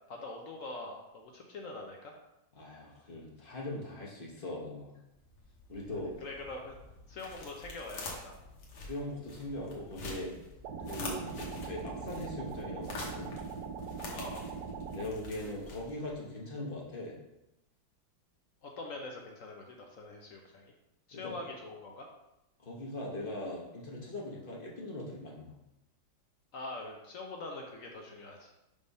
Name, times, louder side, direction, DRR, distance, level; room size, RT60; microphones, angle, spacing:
voice 1, 0.1-2.2 6.2-6.7 7.1-8.4 14.1-14.5 18.6-20.7 21.1-22.1 26.5-28.5, left 2 dB, 65° left, 1 dB, 0.8 m, -43 dB
voice 2, 2.5-4.9 5.7-6.1 8.8-10.3 10.8-13.3 14.9-17.1 21.1-21.3 22.6-25.5, left 1 dB, 35° left, -3 dB, 0.9 m, -40 dB
sound 1, 5.2-16.2, left 2 dB, 90° left, 1.9 m, -46 dB
sound 2, 10.6-15.1, right 5 dB, 65° right, 1.1 m, -41 dB
5.2 x 3.4 x 5.3 m, 0.91 s
omnidirectional pair, 2.1 m